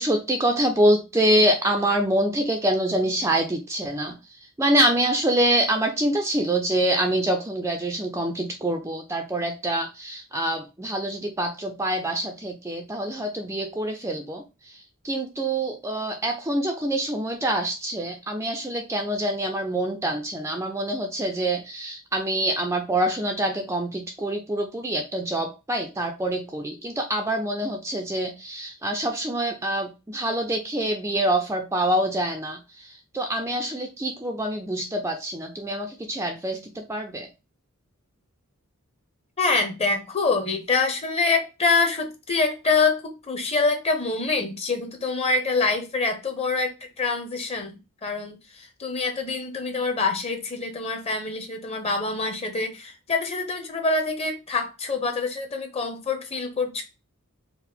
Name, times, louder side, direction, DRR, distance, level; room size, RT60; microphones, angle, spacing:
voice 1, 0.0-4.2 4.6-37.3, right 1 dB, 15° right, 3 dB, 0.4 m, -25 dB
voice 2, 39.4-56.8, left 3 dB, 30° left, 5 dB, 0.9 m, -25 dB
4.6 x 2.1 x 3.5 m, 0.26 s
head